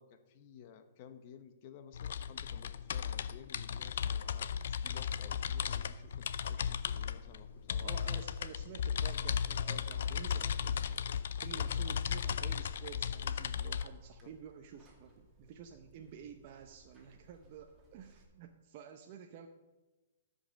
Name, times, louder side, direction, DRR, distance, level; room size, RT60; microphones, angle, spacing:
voice 1, 0.0-8.2 9.6-9.8 14.2-14.3, left 8 dB, 40° left, 9 dB, 1.0 m, -55 dB
sound 1, 1.9-13.9, left 8 dB, 65° left, 0.5 m, -36 dB
Buzz, 6.0-18.2, right 1 dB, 15° right, 2.3 m, -63 dB
voice 2, 7.7-11.0 11.4-19.5, right 7 dB, 40° right, 4 dB, 0.8 m, -51 dB
13.5 x 5.4 x 6.5 m, 1.1 s
hypercardioid pair, 150°, 0 cm